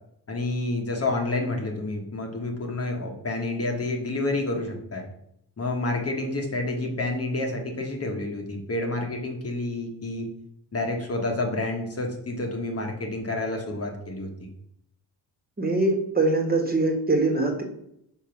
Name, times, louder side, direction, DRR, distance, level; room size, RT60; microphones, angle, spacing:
voice 1, 0.3-5.1 5.6-10.3 10.7-14.5, left 2 dB, 35° left, 2 dB, 1.4 m, -29 dB
voice 2, 15.6-17.6, right 2 dB, 25° right, 2 dB, 1.6 m, -23 dB
5.2 x 4.8 x 5.9 m, 0.76 s
cardioid pair, 105°, 40 cm